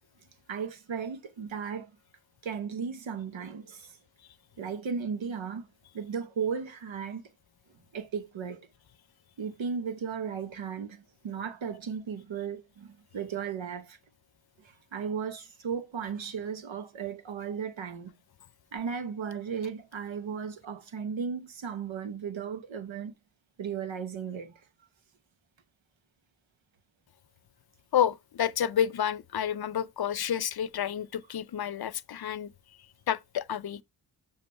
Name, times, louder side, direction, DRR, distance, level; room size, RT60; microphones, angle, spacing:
voice 1, 0.5-1.9 2.4-4.0 4.6-5.7 5.9-7.2 7.9-8.7 9.4-14.0 14.6-18.1 18.7-23.1 23.6-24.5, right 6 dB, 90° right, 1.0 m, -35 dB
voice 2, 27.9-32.5 33.1-33.8, left 9 dB, 55° left, 0.6 m, -29 dB
6.9 x 6.2 x 3.2 m
cardioid pair, 45°, 45 cm